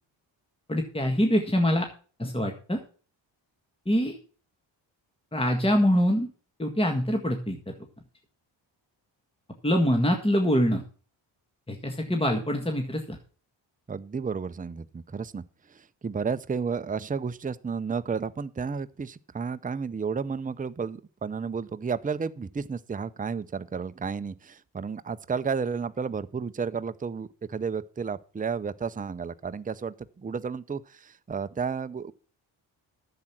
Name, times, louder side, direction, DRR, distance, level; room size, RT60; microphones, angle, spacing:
voice 1, 0.7-1.9 2.2-2.8 3.9-4.2 5.3-6.3 6.6-7.6 9.6-10.8 11.7-13.2, equal, 10° left, 1.7 m, -24 dB
voice 2, 13.9-32.1, right 5 dB, 15° right, 0.7 m, -32 dB
10.5 x 7.7 x 6.0 m
cardioid pair, 60°, 49 cm